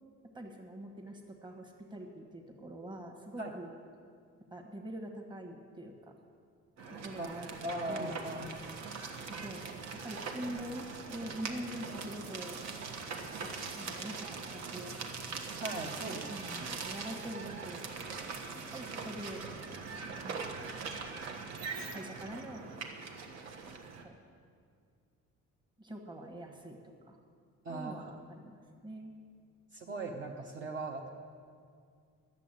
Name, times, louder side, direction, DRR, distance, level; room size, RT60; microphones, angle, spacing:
voice 1, 0.3-3.7 4.5-6.1 7.0-8.3 9.3-9.6 10.0-12.6 13.4-13.5 13.8-15.0 16.0-17.9 18.7-19.4 20.2-20.6 21.9-22.6 24.0-24.1 25.8-27.2 27.7-29.1, right 1 dB, 15° right, 2 dB, 1.4 m, -44 dB
sound 1, 6.8-24.0, right 4 dB, 60° right, 1.3 m, -42 dB
voice 2, 7.6-8.5 11.5-11.6 15.6-16.3 27.6-28.1 29.7-31.1, right 2 dB, 40° right, 1 dB, 0.9 m, -39 dB
12.0 x 7.3 x 9.0 m, 2.2 s
cardioid pair, 155°, 29 cm